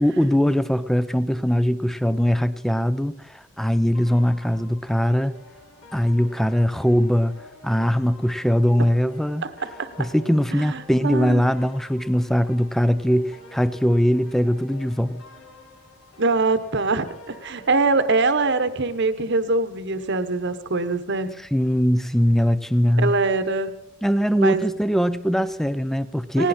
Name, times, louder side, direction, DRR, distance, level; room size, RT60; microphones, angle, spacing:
voice 1, 0.0-5.4 5.9-7.4 7.6-9.4 10.0-15.2 21.5-23.1 24.0-26.5, equal, ahead, 15 dB, 0.5 m, -21 dB
sound 1, 3.9-19.0, left 2 dB, 70° left, 3.6 m, -48 dB
voice 2, 10.5-11.5 16.2-21.3 23.0-23.8 24.4-24.6 26.4-26.5, right 3 dB, 55° right, 11 dB, 1.1 m, -23 dB
19.0 x 17.5 x 4.3 m, 0.83 s
head